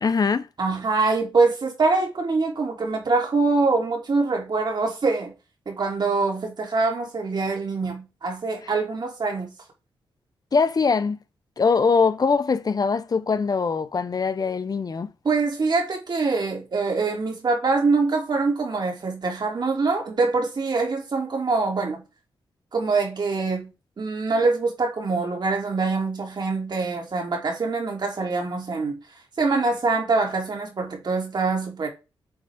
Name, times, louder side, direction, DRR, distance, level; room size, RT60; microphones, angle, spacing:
voice 1, 0.0-0.5 10.5-11.2 11.6-15.1, left 5 dB, 45° left, 0.7 m, -22 dB
voice 2, 0.6-5.3 5.7-9.5 15.2-22.0 22.7-23.7 24.0-29.0 29.4-31.9, right 3 dB, 55° right, 2.8 m, -24 dB
8.1 x 3.8 x 3.5 m
cardioid pair, 65°, 9 cm